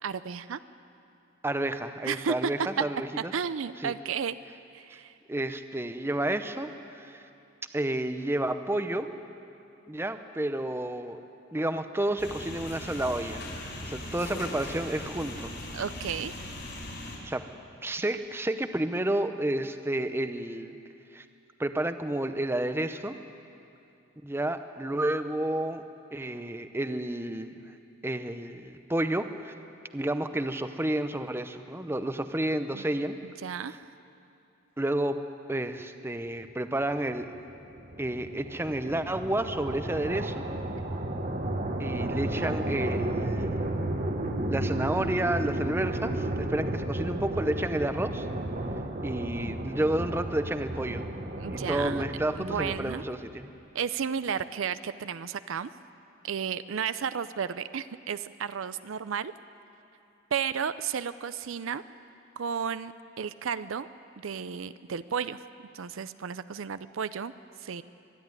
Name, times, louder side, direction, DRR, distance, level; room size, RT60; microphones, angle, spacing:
voice 1, 0.0-0.6 2.0-2.5 3.3-4.4 4.7-5.1 15.7-16.4 32.7-32.8 33.2-33.9 51.4-52.0 52.4-53.0 53.7-55.7 56.2-59.3 60.3-61.8 62.4-63.9 64.2-65.4 65.7-67.3 67.6-67.8, right 7 dB, 65° right, 14 dB, 0.5 m, -33 dB
voice 2, 1.4-3.3 3.8-3.9 5.3-7.3 7.7-9.1 9.9-11.2 11.5-13.4 13.8-15.5 17.2-17.4 17.8-20.8 21.1-21.2 21.6-23.2 24.2-25.8 26.1-27.5 28.0-29.5 29.9-33.2 34.8-35.2 35.5-37.3 38.0-40.5 41.8-43.6 44.5-48.3 49.0-51.0 51.5-53.5, right 1 dB, 10° right, 9 dB, 0.7 m, -30 dB
sound 1, 12.2-17.2, left 1 dB, 55° left, 4.7 m, -39 dB
sound 2, 37.1-53.3, right 1 dB, 40° right, 1.1 m, -33 dB
24.0 x 11.5 x 9.6 m, 2.7 s
head